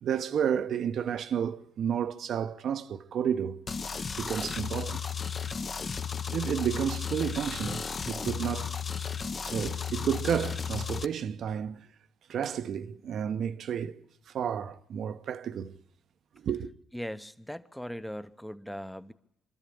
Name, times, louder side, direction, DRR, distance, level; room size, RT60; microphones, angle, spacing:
voice 1, 0.0-3.7 4.2-5.0 6.3-8.7 9.4-11.9 12.3-14.0 14.3-15.7 16.4-16.7, right 8 dB, 65° right, 0.9 m, -31 dB
sound 1, 3.7-11.1, left 6 dB, 40° left, 0.9 m, -34 dB
voice 2, 16.9-19.1, equal, 5° left, 0.8 m, -39 dB
25.0 x 13.0 x 8.5 m
cardioid pair, 105°, 0 cm